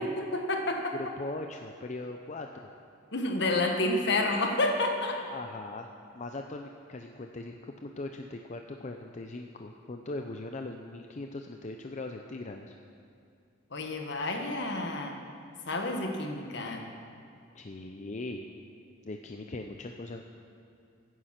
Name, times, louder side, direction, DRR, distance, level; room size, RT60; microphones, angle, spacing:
voice 1, 0.0-0.9 3.1-5.2 13.7-15.2 15.7-16.8, left 2 dB, 65° left, 3 dB, 1.5 m, -29 dB
voice 2, 0.9-2.7 5.3-5.9 6.1-12.7 17.5-18.5 19.0-20.2, left 2 dB, 40° left, 4 dB, 0.6 m, -40 dB
15.5 x 9.5 x 5.9 m, 2.5 s
head